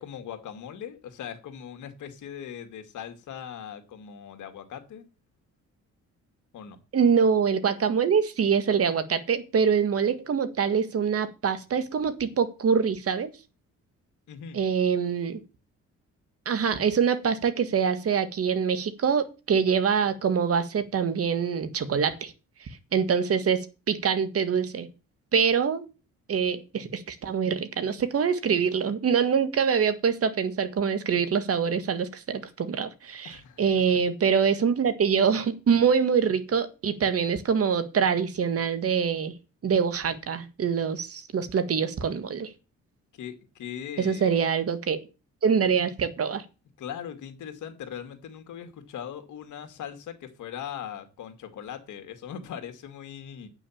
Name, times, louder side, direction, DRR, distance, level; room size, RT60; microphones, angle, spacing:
voice 1, 0.0-5.1 6.5-6.8 14.3-14.6 33.2-34.0 43.1-44.3 46.8-53.5, left 8 dB, 75° left, 2.2 m, -40 dB
voice 2, 6.9-13.3 14.5-15.4 16.5-22.3 22.9-24.9 25.3-25.8 26.3-39.3 39.6-42.5 44.0-45.0 45.4-46.4, right 6 dB, 50° right, 1.7 m, -25 dB
9.4 x 6.2 x 7.3 m
cardioid pair, 90°, 30 cm